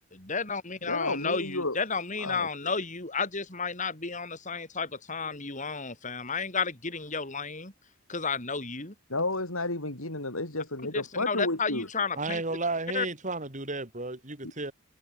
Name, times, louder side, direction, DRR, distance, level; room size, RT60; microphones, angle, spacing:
voice 1, 0.1-7.7 8.1-8.9 10.9-12.4 12.9-13.1, left 4 dB, 35° left, 5.5 m, -32 dB
voice 2, 0.9-1.8 2.2-2.5 9.1-11.9 14.4-14.5, left 2 dB, 75° left, 5.9 m, -31 dB
voice 3, 12.2-14.7, right 3 dB, 35° right, 4.3 m, -33 dB
head